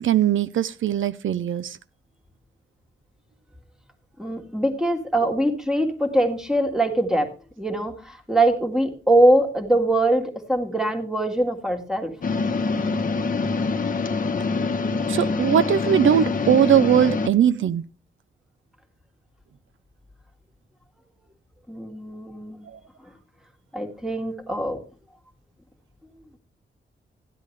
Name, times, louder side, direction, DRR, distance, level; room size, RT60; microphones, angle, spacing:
voice 1, 0.0-1.8 15.1-17.8 22.7-22.8, right 9 dB, 75° right, 14 dB, 0.5 m, -20 dB
voice 2, 4.2-7.3 7.6-12.1 21.7-22.7 23.7-24.8, right 1 dB, 5° right, 4 dB, 1.7 m, -22 dB
sound 1, 12.2-17.3, left 4 dB, 45° left, 0.9 m, -25 dB
14.0 x 10.5 x 3.2 m, 0.35 s
wide cardioid pair, 135°, 20 cm